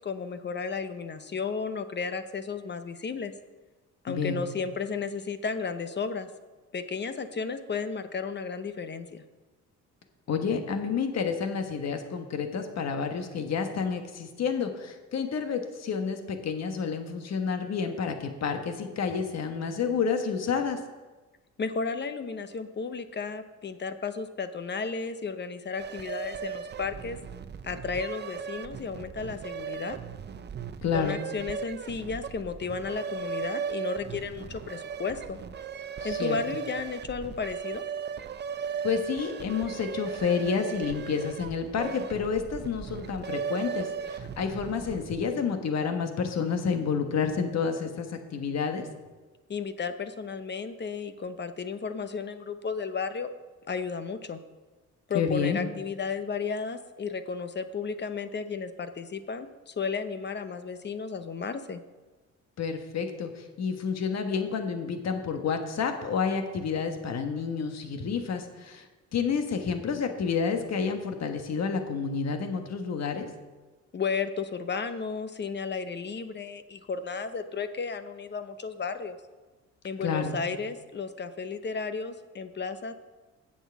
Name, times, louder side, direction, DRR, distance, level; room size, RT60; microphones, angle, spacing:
voice 1, 0.0-3.3 4.0-6.3 6.7-9.2 21.6-27.2 27.6-30.0 30.9-35.4 36.0-37.8 49.5-53.3 53.7-54.4 55.1-61.8 73.9-79.2 79.8-82.9, left 5 dB, 35° left, 10 dB, 0.8 m, -33 dB
voice 2, 4.1-4.4 10.3-20.8 30.8-31.2 36.0-36.4 38.8-48.9 55.1-55.7 62.6-68.9 69.1-73.3 80.0-80.4, left 6 dB, 60° left, 6 dB, 1.4 m, -29 dB
sound 1, 25.8-45.2, right 7 dB, 35° right, 0.6 m, -37 dB
7.9 x 7.5 x 7.1 m, 1.2 s
cardioid pair, 90°, 30 cm